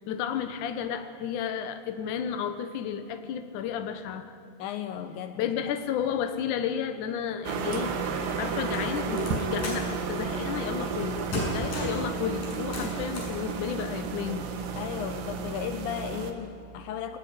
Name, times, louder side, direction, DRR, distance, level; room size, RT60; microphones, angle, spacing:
voice 1, 0.1-4.3 5.4-7.9 8.4-14.4, left 8 dB, 70° left, 8 dB, 1.9 m, -32 dB
voice 2, 4.6-5.5 14.8-17.2, left 9 dB, 90° left, 9 dB, 2.0 m, -35 dB
sound 1, 7.5-16.3, right 5 dB, 70° right, 3.8 m, -32 dB
sound 2, 8.7-9.9 10.8-11.1 11.3-12.0 12.4-13.4, left 1 dB, 45° left, 8.3 m, -35 dB
27.0 x 19.0 x 9.7 m, 2.9 s
omnidirectional pair, 5.3 m